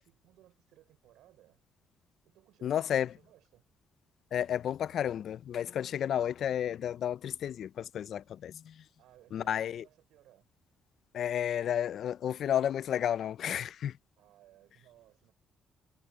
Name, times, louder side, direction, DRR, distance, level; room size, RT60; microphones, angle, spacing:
voice 1, 0.0-1.6 2.2-3.6 9.0-10.5 14.2-15.3, right 14 dB, 90° right, 5.5 m, -62 dB
voice 2, 2.6-3.1 4.3-8.8 9.3-9.8 11.1-13.9, left 10 dB, 65° left, 0.5 m, -32 dB
cardioid pair, 90°, 0 cm